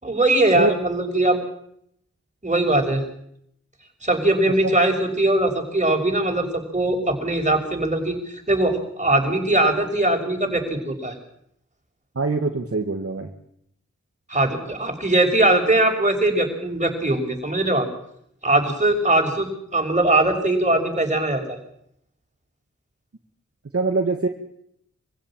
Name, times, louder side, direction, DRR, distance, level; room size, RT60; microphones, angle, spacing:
voice 1, 0.0-1.4 2.4-3.0 4.0-11.2 14.3-17.9 18.4-21.6, right 2 dB, 25° right, 3 dB, 6.2 m, -21 dB
voice 2, 12.2-13.3 23.7-24.3, right 3 dB, 55° right, 4 dB, 2.0 m, -23 dB
25.0 x 16.0 x 8.9 m, 0.72 s
wide cardioid pair, 55°, 29 cm